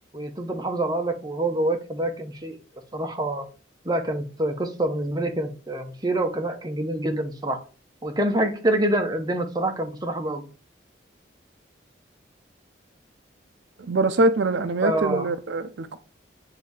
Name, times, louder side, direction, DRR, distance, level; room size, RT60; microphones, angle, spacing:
voice 1, 0.1-2.6 2.9-3.4 3.8-7.6 8.0-10.4 14.8-15.3, right 1 dB, 20° right, 0.7 m, -26 dB
voice 2, 13.8-16.0, right 2 dB, 70° right, 0.5 m, -23 dB
7.4 x 2.7 x 4.7 m
head